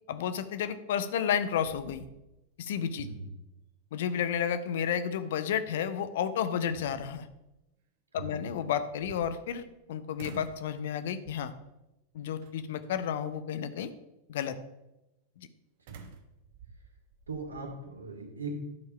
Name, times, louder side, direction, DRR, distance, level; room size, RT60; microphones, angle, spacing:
voice 1, 0.1-2.1 2.6-3.1 3.9-7.3 8.1-9.6 9.9-11.5 12.1-13.9 14.3-14.6, left 8 dB, 55° left, 12 dB, 0.7 m, -31 dB
sound 1, 1.0-1.3 1.6-2.6 3.0-3.1 5.8-5.9 6.5-7.4 8.7-9.8 10.2-10.7 11.2-11.6 12.4-12.9 15.9-17.7, right 6 dB, 50° right, 1.0 m, -51 dB
voice 2, 17.3-18.5, right 3 dB, 75° right, 2 dB, 1.9 m, -39 dB
11.5 x 4.7 x 5.5 m, 0.94 s
figure-of-eight pair, 90°, 0 cm